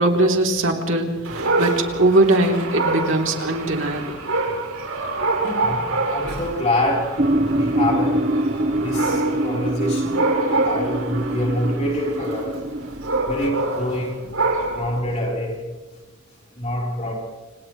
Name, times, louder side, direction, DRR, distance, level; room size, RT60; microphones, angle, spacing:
voice 1, 0.0-4.2, right 2 dB, 60° right, 2 dB, 3.2 m, -20 dB
Dog, 1.2-15.0, right 2 dB, 85° right, 6.1 m, -26 dB
voice 2, 5.4-7.2 7.5-10.2 10.6-12.7 13.2-14.3 14.7-15.6 16.5-17.1, left 1 dB, 30° left, -2 dB, 4.0 m, -26 dB
sound 1, 7.2-13.4, right 1 dB, 40° right, 0.8 m, -24 dB
29.5 x 28.0 x 3.2 m, 1.2 s
head